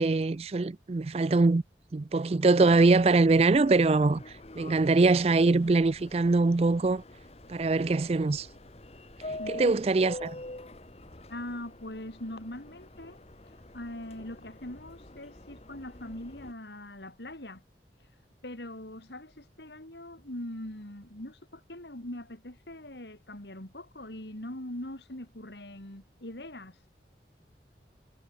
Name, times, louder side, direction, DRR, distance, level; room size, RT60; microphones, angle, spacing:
voice 1, 0.0-1.6 1.9-7.0 7.5-8.5 9.5-10.4, right 3 dB, 35° right, 0.4 m, -23 dB
Subway metro underground, 2.7-16.5, left 2 dB, 35° left, 1.5 m, -46 dB
voice 2, 9.4-9.8 11.3-17.6 18.0-18.1 18.4-26.8, left 1 dB, 75° left, 4.3 m, -42 dB
head